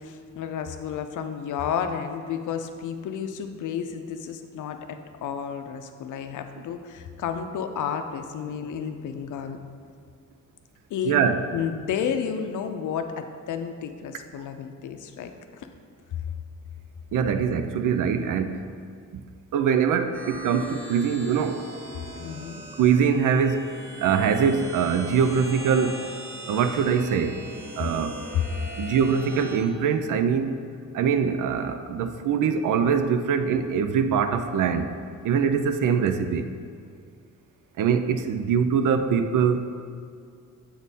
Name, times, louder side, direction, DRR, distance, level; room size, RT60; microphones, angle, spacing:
voice 1, 0.0-9.6 10.9-11.2 11.5-15.7 22.2-22.6 28.3-28.4, left 7 dB, 75° left, 7 dB, 0.5 m, -31 dB
voice 2, 11.0-11.4 14.4-14.5 17.1-18.8 19.1-19.2 19.5-21.7 22.8-23.7 24.0-26.0 26.5-27.4 27.8-28.1 28.8-30.6 30.9-35.0 35.2-36.5 37.8-39.7, right 6 dB, 85° right, 9 dB, 0.5 m, -23 dB
sound 1, 20.1-29.6, right 1 dB, 45° right, 1.1 m, -40 dB
7.7 x 3.5 x 4.1 m, 2.2 s
cardioid pair, 125°, 30 cm